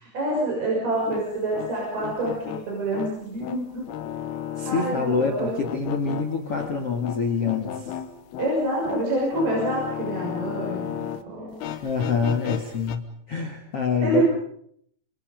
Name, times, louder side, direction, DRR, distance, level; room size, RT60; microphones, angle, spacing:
voice 1, 0.0-3.8 4.7-5.5 8.4-11.6 14.0-14.2, right 1 dB, 50° right, -4 dB, 8.2 m, -27 dB
sound 1, 0.9-11.2 11.5-13.0, left 10 dB, 65° left, 2.9 m, -35 dB
voice 2, 4.6-7.9 11.8-14.2, left 5 dB, 45° left, 4 dB, 2.0 m, -26 dB
28.0 x 28.0 x 5.3 m, 0.68 s
omnidirectional pair, 5.6 m